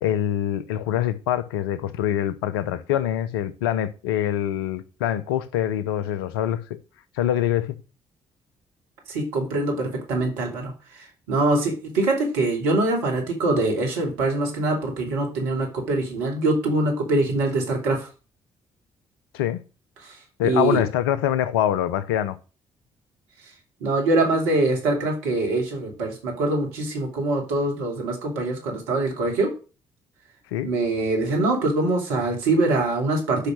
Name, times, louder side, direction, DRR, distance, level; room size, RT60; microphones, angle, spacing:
voice 1, 0.0-6.8 7.2-7.8 19.3-19.6 20.4-22.4 30.5-30.7, left 11 dB, 85° left, 0.8 m, -24 dB
voice 2, 9.1-18.1 20.0-20.2 20.4-20.8 23.8-29.5 30.6-33.5, right 2 dB, 80° right, 3.0 m, -23 dB
10.0 x 5.6 x 6.3 m
hypercardioid pair, 45°, 12 cm